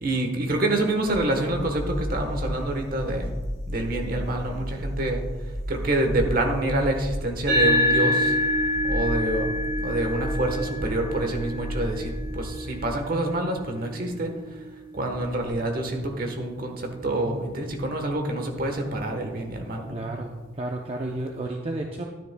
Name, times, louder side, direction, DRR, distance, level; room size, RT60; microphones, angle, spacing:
voice 1, 0.0-3.3 3.7-5.2 5.7-8.4 8.8-9.5 9.8-14.6 14.9-20.0, right 1 dB, 45° right, 4 dB, 1.2 m, -27 dB
sound 1, 1.4-13.0, equal, 80° left, 1.1 m, -33 dB
sound 2, 7.5-16.2, equal, 70° right, 2.5 m, -28 dB
voice 2, 19.9-22.0, right 2 dB, 30° right, 1 dB, 0.5 m, -32 dB
12.0 x 10.0 x 2.2 m, 1.4 s
head